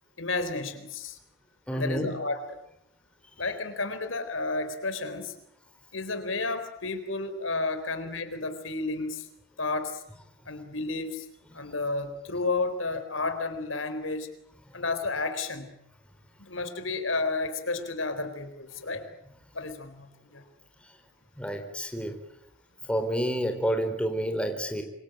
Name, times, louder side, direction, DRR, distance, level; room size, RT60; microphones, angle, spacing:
voice 1, 0.2-1.2 1.7-2.6 3.4-5.3 5.9-9.3 9.6-10.0 10.5-11.3 11.5-14.3 14.7-15.7 16.5-19.1 19.5-20.4, left 3 dB, 85° left, 9 dB, 4.0 m, -31 dB
voice 2, 1.7-2.1 21.4-22.1 22.9-24.8, equal, 5° left, 5 dB, 3.9 m, -29 dB
27.0 x 24.0 x 9.1 m, 0.81 s
head